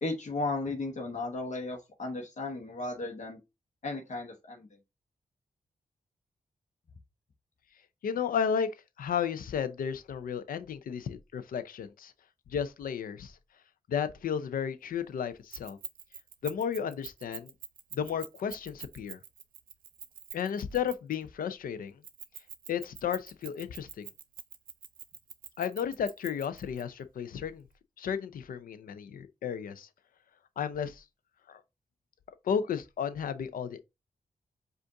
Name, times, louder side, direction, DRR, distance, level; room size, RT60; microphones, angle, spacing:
voice 1, 0.0-3.4 3.8-4.7, left 2 dB, 55° left, 1.0 m, -35 dB
voice 2, 8.0-8.7 9.0-12.1 12.5-13.4 13.9-15.8 16.4-17.5 17.9-19.2 20.3-22.0 22.7-24.1 25.6-27.6 28.0-29.9 30.6-31.0 31.5-31.6 32.4-33.8, left 7 dB, 85° left, 0.5 m, -33 dB
Keys jangling, 15.5-21.2 22.0-26.8, right 8 dB, 75° right, 0.6 m, -45 dB
5.1 x 2.5 x 3.7 m
cardioid pair, 65°, 14 cm